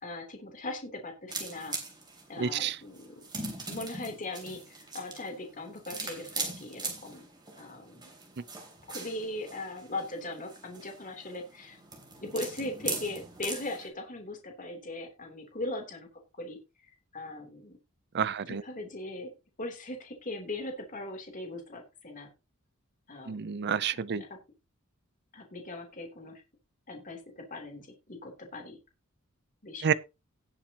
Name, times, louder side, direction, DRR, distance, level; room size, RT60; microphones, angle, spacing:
voice 1, 0.0-1.8 2.3-3.2 3.7-7.3 7.5-8.1 8.9-11.8 12.2-16.1 16.4-16.6 17.1-17.8 18.5-19.3 19.6-22.3 23.1-23.6 23.9-24.4 25.3-26.4 26.9-28.8 29.6-29.9, left 2 dB, 35° left, 3.2 m, -39 dB
sound 1, 1.3-13.9, right 3 dB, 20° right, 3.5 m, -41 dB
voice 2, 2.4-2.8 8.4-8.5 18.1-18.6 23.3-24.2 29.8-29.9, right 7 dB, 50° right, 0.5 m, -29 dB
18.0 x 7.3 x 2.9 m
head